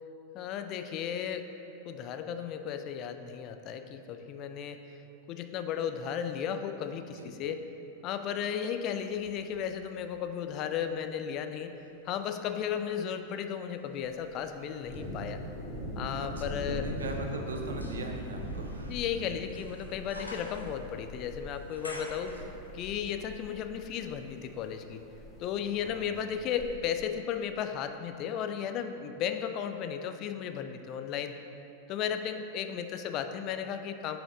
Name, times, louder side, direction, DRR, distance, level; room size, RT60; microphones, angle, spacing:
voice 1, 0.3-1.5 1.8-4.8 5.3-7.6 8.0-11.7 12.0-15.4 16.0-16.9 18.9-22.5 22.7-25.0 25.4-31.4 31.9-34.2, left 8 dB, 40° left, 8 dB, 0.3 m, -35 dB
voice 2, 7.0-7.3 16.2-19.3 22.3-22.6 25.8-26.1, right 2 dB, 70° right, 3 dB, 0.6 m, -41 dB
sound 1, 8.9-11.1 11.6-23.0 23.3-23.4, left 1 dB, 85° left, 0.6 m, -51 dB
Thunder, 14.0-26.7, equal, 10° left, 1.4 m, -41 dB
5.9 x 5.1 x 3.7 m, 2.8 s
figure-of-eight pair, 90°, 0 cm